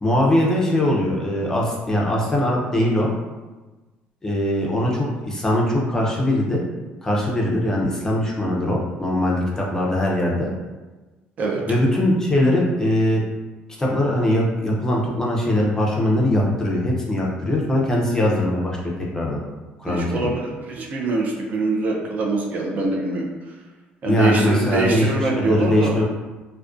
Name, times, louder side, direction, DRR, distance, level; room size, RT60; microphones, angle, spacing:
voice 1, 0.0-3.1 4.2-6.6 7.0-10.5 11.7-13.2 13.8-18.8 19.1-19.4 19.8-20.3 24.0-26.0, left 1 dB, 15° left, -3 dB, 0.5 m, -21 dB
voice 2, 19.9-23.3 24.0-26.0, right 3 dB, 45° right, -1 dB, 0.4 m, -23 dB
2.4 x 2.1 x 2.4 m, 1.2 s
cardioid pair, 125°, 4 cm